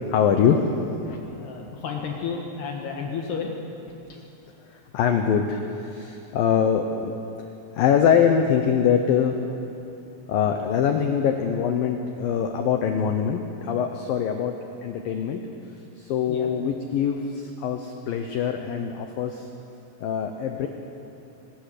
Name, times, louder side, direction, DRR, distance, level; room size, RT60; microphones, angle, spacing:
voice 1, 0.1-0.7 4.7-7.1 7.7-9.4 10.3-14.5 14.8-15.4 16.0-19.5 20.0-20.7, left 7 dB, 90° left, 5 dB, 2.0 m, -23 dB
voice 2, 1.0-3.5 4.1-4.2 16.3-16.5, left 6 dB, 65° left, 0 dB, 3.3 m, -32 dB
22.5 x 20.0 x 6.7 m, 2.8 s
omnidirectional pair, 5.5 m